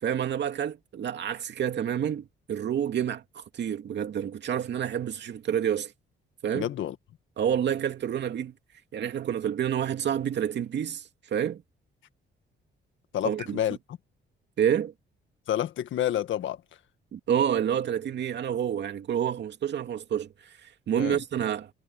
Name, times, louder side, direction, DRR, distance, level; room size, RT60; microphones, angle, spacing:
voice 1, 0.0-5.9 6.4-6.7 7.4-8.5 8.9-11.6 13.2-13.6 14.6-14.9 17.1-21.7, right 9 dB, 60° right, 2.5 m, -28 dB
voice 2, 6.5-6.9 13.1-13.8 15.5-16.6 21.0-21.2, left 11 dB, 75° left, 1.8 m, -29 dB
cardioid pair, 90°, 20 cm